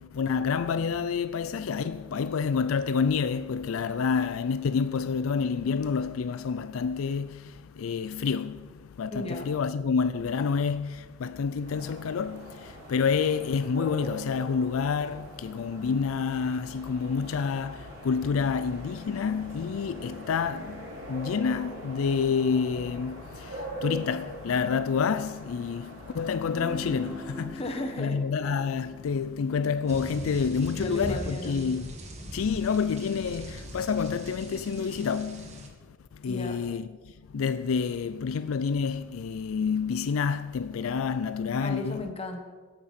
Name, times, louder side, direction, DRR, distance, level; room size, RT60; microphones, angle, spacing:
voice 1, 0.0-27.6 28.0-32.0 32.3-35.7 36.1-36.9 37.3-42.0, left 6 dB, 85° left, 0.4 m, -28 dB
voice 2, 9.1-9.5 27.6-28.2 30.7-31.7 36.3-36.6 41.6-42.4, left 1 dB, 30° left, 1.4 m, -35 dB
sound 1, 11.6-27.4, right 1 dB, 65° right, 4.2 m, -43 dB
Guitar, 26.5-32.1, left 1 dB, 5° right, 4.8 m, -44 dB
sound 2, 29.9-35.7, right 1 dB, 35° right, 1.6 m, -40 dB
17.5 x 8.7 x 4.3 m
head